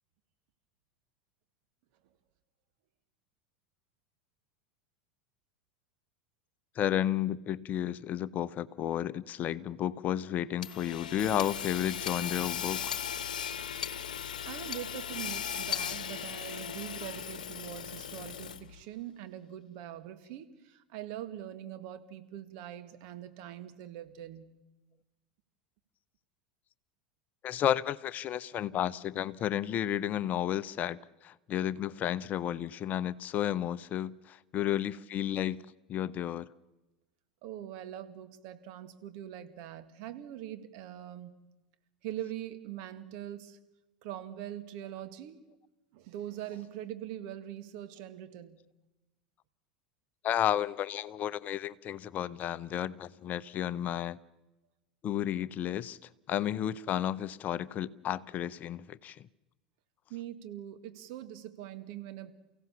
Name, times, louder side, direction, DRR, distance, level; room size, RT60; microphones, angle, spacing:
voice 1, 6.8-13.0 27.4-35.6 35.9-36.5 50.2-54.2 55.0-56.0 56.3-59.2, left 10 dB, 40° left, 0.8 m, -32 dB
Hammer / Sawing, 10.6-18.8, left 8 dB, 75° left, 1.1 m, -37 dB
voice 2, 14.4-24.5 37.4-41.4 42.0-43.6 44.0-45.5 45.9-48.6 60.1-62.3, right 11 dB, 55° right, 2.0 m, -43 dB
29.5 x 16.5 x 7.3 m
figure-of-eight pair, 80°, 4 cm